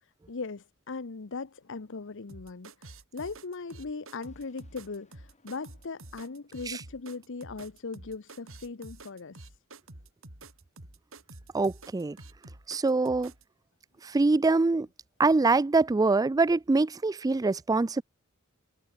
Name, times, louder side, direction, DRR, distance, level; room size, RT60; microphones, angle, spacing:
voice 1, 0.0-9.6, left 4 dB, 65° left, 0.8 m, -39 dB
sound 1, 2.3-13.4, right 2 dB, 70° right, 4.6 m, -49 dB
sound 2, 4.1-9.5, left 2 dB, 35° left, 8.0 m, -69 dB
voice 2, 11.5-12.2 12.7-13.3 14.0-14.9 15.2-18.0, right 3 dB, 15° right, 0.3 m, -24 dB
head